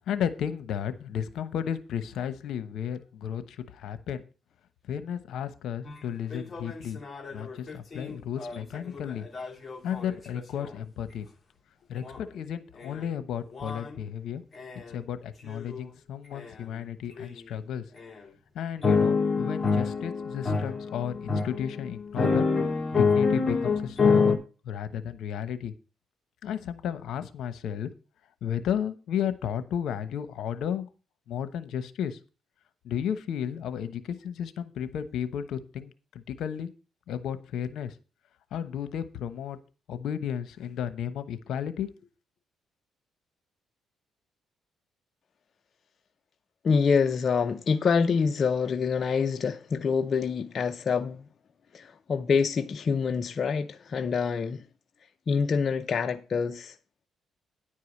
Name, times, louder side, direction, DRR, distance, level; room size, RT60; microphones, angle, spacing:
voice 1, 0.1-4.2 4.9-7.0 7.3-9.3 9.8-11.3 11.9-14.4 14.9-17.8 18.5-22.4 22.9-24.4 24.6-25.7 26.4-27.9 28.4-30.9 31.3-32.2 32.8-35.9 36.3-36.7 37.1-37.9 38.5-39.6 39.9-41.9, left 9 dB, 75° left, 1.0 m, -33 dB
sound 1, 5.9-6.0 6.3-10.7 12.0-12.2 12.8-13.1 13.5-14.0 14.6-14.9 15.5-15.8 16.4-16.5 17.2-17.3 18.0-18.1 18.8-24.4, left 4 dB, 30° left, 2.4 m, -27 dB
voice 2, 46.6-51.3 51.7-54.6 55.3-56.8, left 5 dB, 45° left, 0.6 m, -26 dB
10.0 x 4.8 x 7.1 m
cardioid pair, 90°, 0 cm